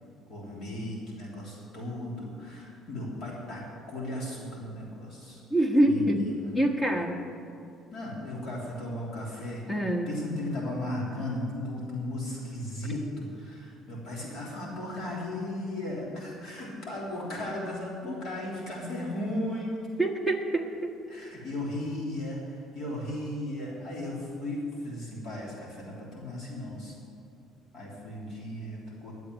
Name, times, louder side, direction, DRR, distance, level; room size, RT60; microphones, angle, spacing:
voice 1, 0.3-3.6 3.9-5.4 5.8-6.6 7.9-19.8 21.1-26.9 27.7-29.1, left 1 dB, 55° left, -4 dB, 3.3 m, -36 dB
voice 2, 5.5-6.2 6.5-7.2 9.7-10.1 18.0-18.1 20.0-20.9, right 1 dB, 15° left, 3 dB, 1.3 m, -25 dB
12.0 x 7.9 x 9.4 m, 2.5 s
cardioid pair, 135°, 0 cm